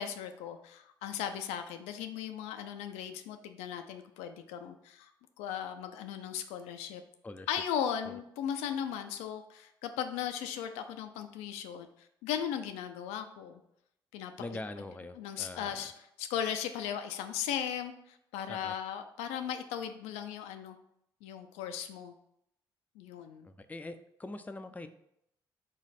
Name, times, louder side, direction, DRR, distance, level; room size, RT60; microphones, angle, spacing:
voice 1, 0.0-5.1 5.4-7.0 7.5-13.6 14.1-14.3 15.2-15.9 16.2-20.8 21.2-22.1 23.0-23.5, left 9 dB, 80° left, 7 dB, 0.4 m, -37 dB
voice 2, 7.2-7.5 8.1-8.2 14.4-15.9 18.5-18.7 23.4-24.9, left 2 dB, 15° left, 9 dB, 0.4 m, -43 dB
3.8 x 3.1 x 4.1 m, 0.77 s
hypercardioid pair, 55°, 11 cm